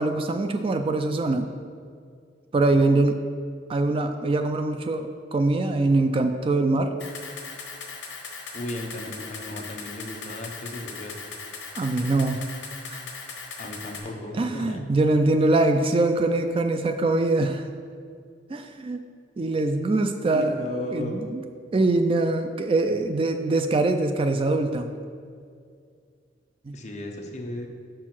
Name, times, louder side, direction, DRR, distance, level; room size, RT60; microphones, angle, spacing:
voice 1, 0.0-1.5 2.5-3.2 3.7-6.9 11.7-12.4 12.9-13.0 14.3-17.6 18.5-19.0 19.4-20.5 20.9-21.4 21.7-24.9 26.7-26.8, right 2 dB, 30° right, 7 dB, 0.3 m, -23 dB
Camera, 7.0-14.0, left 5 dB, 70° left, 1.3 m, -38 dB
voice 2, 8.5-11.2 13.6-15.3 20.3-21.2 26.7-27.7, left 1 dB, 40° left, 2 dB, 0.8 m, -35 dB
6.3 x 4.5 x 5.9 m, 2.2 s
head